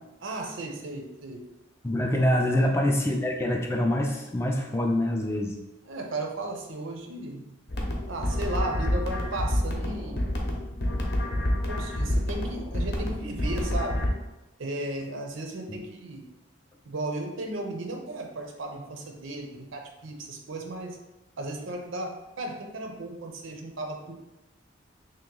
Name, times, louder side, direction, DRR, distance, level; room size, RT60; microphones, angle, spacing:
voice 1, 0.2-1.5 2.5-2.8 5.9-7.5 8.1-10.2 10.8-11.1 11.7-14.1 14.6-16.3 16.8-21.0 21.4-24.1, right 2 dB, 70° right, 3 dB, 0.6 m, -35 dB
voice 2, 1.8-5.6 15.7-15.8, left 1 dB, 15° left, 1 dB, 0.3 m, -25 dB
sound 1, 7.7-14.1, left 1 dB, 50° left, 0.7 m, -28 dB
3.2 x 2.9 x 3.7 m, 1.0 s
head